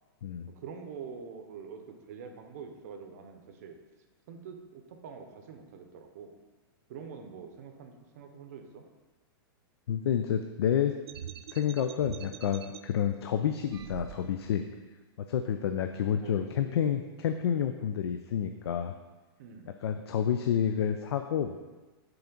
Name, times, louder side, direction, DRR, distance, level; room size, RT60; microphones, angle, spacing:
voice 1, 0.6-3.8 4.3-6.3 6.9-8.8 16.2-16.9 19.4-19.8, right 6 dB, 40° right, 5 dB, 0.6 m, -45 dB
voice 2, 9.9-10.9 11.5-14.6 15.2-18.9 19.8-21.6, left 9 dB, 90° left, 7 dB, 0.4 m, -29 dB
sound 1, 11.1-12.8 13.7-14.6, right 9 dB, 85° right, 0.4 m, -43 dB
5.7 x 3.8 x 5.2 m, 1.3 s
supercardioid pair, 175°, 13 cm